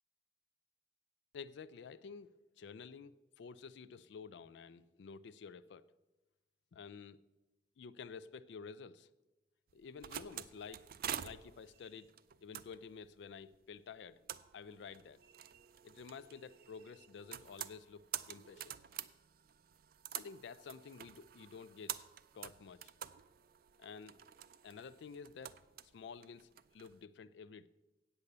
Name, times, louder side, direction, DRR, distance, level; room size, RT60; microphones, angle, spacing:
voice 1, 1.3-5.8 6.7-7.2 7.8-9.1 9.7-10.9 11.2-12.1 12.4-14.2 14.5-15.2 15.8-18.7 20.1-22.1 22.3-22.9 23.8-24.2 24.6-27.7, left 5 dB, 75° left, 15 dB, 0.4 m, -51 dB
sound 1, 9.7-26.9, right 10 dB, 55° right, 0.4 m, -48 dB
8.4 x 8.1 x 6.7 m, 1.1 s
head